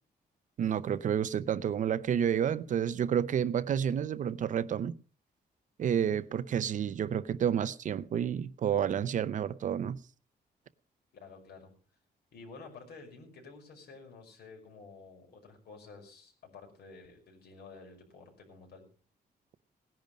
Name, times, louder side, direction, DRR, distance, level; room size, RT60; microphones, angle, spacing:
voice 1, 0.6-4.9 5.8-10.0, right 8 dB, 50° right, 0.6 m, -30 dB
voice 2, 11.1-11.7 12.3-18.9, left 4 dB, 75° left, 5.6 m, -51 dB
18.0 x 10.5 x 5.2 m
wide cardioid pair, 180°, 17 cm